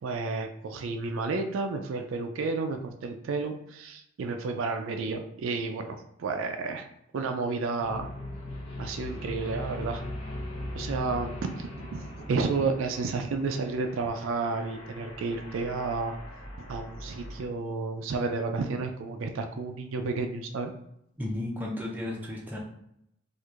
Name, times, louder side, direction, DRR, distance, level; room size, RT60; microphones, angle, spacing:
voice 1, 0.0-6.9 7.1-8.1 8.8-10.1 10.7-16.2 16.6-20.7, right 4 dB, 75° right, 5 dB, 0.4 m, -31 dB
sound 1, 7.8-17.5, left 1 dB, 30° left, 0.7 m, -40 dB
voice 2, 21.2-22.6, left 1 dB, 10° right, -3 dB, 0.5 m, -33 dB
4.4 x 2.5 x 2.4 m, 0.75 s
head